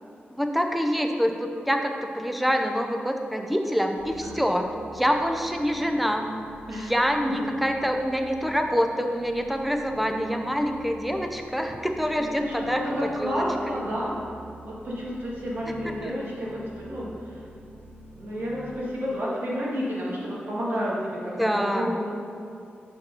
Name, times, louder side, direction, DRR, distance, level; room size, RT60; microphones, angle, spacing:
voice 1, 0.3-4.7 4.9-6.3 6.7-13.8 15.8-16.1 21.4-21.9, equal, ahead, 4 dB, 0.5 m, -26 dB
sound 1, 4.0-18.7, right 1 dB, 90° right, 1.0 m, -47 dB
voice 2, 12.4-14.1 14.7-17.4 18.1-22.1, equal, 60° right, -6 dB, 1.8 m, -30 dB
6.8 x 4.6 x 5.4 m, 2.5 s
wide cardioid pair, 145°, 4 cm